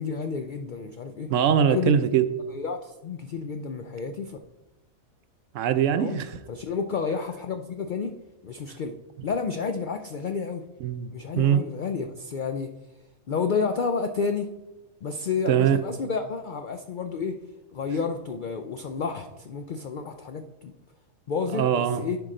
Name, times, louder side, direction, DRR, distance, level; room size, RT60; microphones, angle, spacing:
voice 1, 0.0-1.3 1.7-2.1 2.5-4.4 5.9-6.2 6.5-8.1 8.4-8.9 9.2-10.6 11.1-12.7 13.3-14.5 15.0-17.4 17.7-20.7 21.3-22.2, left 5 dB, 90° left, 7 dB, 0.4 m, -30 dB
voice 2, 1.3-2.2 5.5-6.3 10.8-11.1 11.4-11.6 15.5-15.8 21.5-22.0, right 9 dB, 70° right, 11 dB, 0.9 m, -22 dB
10.5 x 4.7 x 3.8 m, 1.0 s
omnidirectional pair, 1.4 m